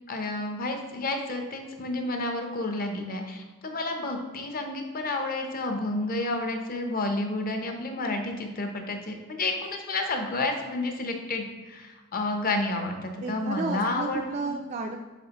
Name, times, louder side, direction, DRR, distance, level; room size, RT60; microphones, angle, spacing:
voice 1, 0.1-14.3, left 2 dB, 45° left, 4 dB, 0.8 m, -30 dB
voice 2, 13.2-15.0, right 4 dB, 35° right, 3 dB, 0.3 m, -32 dB
7.7 x 4.4 x 2.9 m, 1.2 s
head